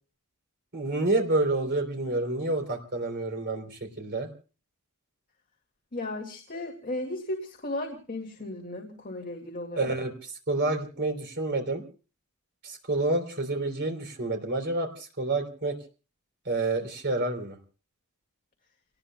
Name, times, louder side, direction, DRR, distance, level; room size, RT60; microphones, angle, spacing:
voice 1, 0.7-4.3 9.8-11.8 12.6-15.8 16.5-17.6, right 2 dB, 55° right, 5 dB, 3.6 m, -28 dB
voice 2, 5.9-9.9, left 1 dB, 40° left, 2 dB, 2.2 m, -35 dB
29.5 x 19.0 x 2.3 m, 0.37 s
head